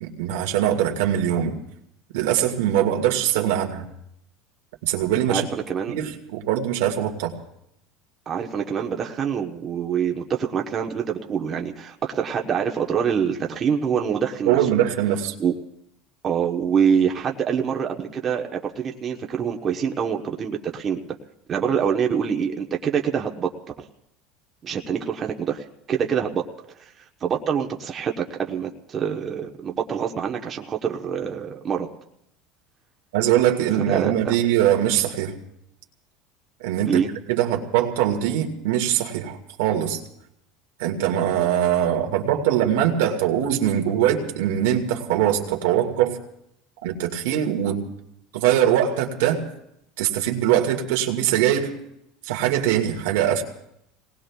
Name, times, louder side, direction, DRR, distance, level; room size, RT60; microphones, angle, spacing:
voice 1, 0.0-1.6 2.1-3.9 4.8-5.5 5.9-7.3 14.5-15.3 33.1-35.3 36.6-37.0 37.3-40.0 40.8-46.2 46.8-47.8 48.3-49.4 50.0-51.7 52.2-53.4, right 11 dB, 90° right, 2 dB, 1.7 m, -22 dB
voice 2, 5.3-6.1 8.3-14.6 15.4-15.5 16.2-21.0 21.5-23.5 24.6-26.4 26.8-26.9 27.2-31.9 33.9-34.3 36.8-37.1, right 7 dB, 30° right, 2 dB, 1.0 m, -25 dB
29.0 x 19.0 x 2.3 m, 0.77 s
supercardioid pair, 135°, 0 cm